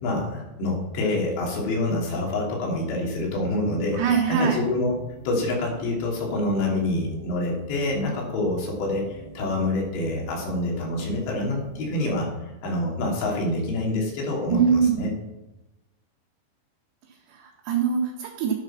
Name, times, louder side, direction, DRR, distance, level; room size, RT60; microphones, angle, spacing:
voice 1, 0.0-4.0 4.3-4.9 5.3-12.3 12.6-15.1, left 2 dB, 80° left, -2 dB, 5.3 m, -26 dB
sound 1, 2.8-12.1, right 4 dB, 55° right, 2.0 m, -45 dB
voice 2, 3.9-4.6 14.5-15.0 17.1-18.5, right 6 dB, 75° right, -2 dB, 3.7 m, -23 dB
13.0 x 10.5 x 5.8 m, 0.99 s
omnidirectional pair, 5.0 m